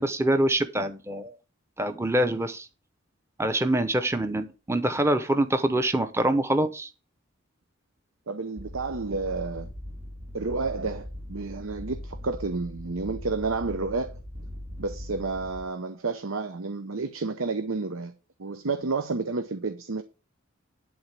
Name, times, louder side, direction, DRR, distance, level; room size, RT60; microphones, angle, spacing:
voice 1, 0.0-1.4 1.8-2.7 3.4-6.9, right 1 dB, 15° right, 0.8 m, -25 dB
voice 2, 8.3-9.7 10.3-14.1 14.8-18.1 18.4-20.0, right 3 dB, 85° right, 0.8 m, -30 dB
sound 1, 8.6-15.6, left 1 dB, 40° right, 3.4 m, -40 dB
11.5 x 4.1 x 7.4 m
head